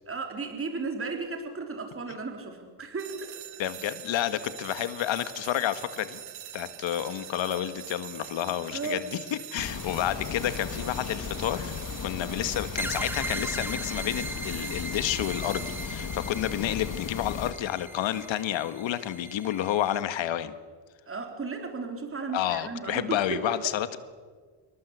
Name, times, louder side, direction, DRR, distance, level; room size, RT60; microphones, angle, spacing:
voice 1, 0.1-3.3 8.7-9.0 21.1-23.6, right 4 dB, 25° right, 4 dB, 3.9 m, -35 dB
sound 1, 3.0-15.9, right 11 dB, 80° right, 2.8 m, -44 dB
voice 2, 3.6-6.2 6.5-20.5 22.3-24.0, left 11 dB, 70° left, 11 dB, 1.8 m, -30 dB
sound 2, 9.6-17.5, left 6 dB, 40° left, 2.1 m, -36 dB
sound 3, 12.8-20.0, right 1 dB, 5° right, 2.3 m, -38 dB
27.5 x 23.0 x 8.2 m, 1.6 s
cardioid pair, 115°, 47 cm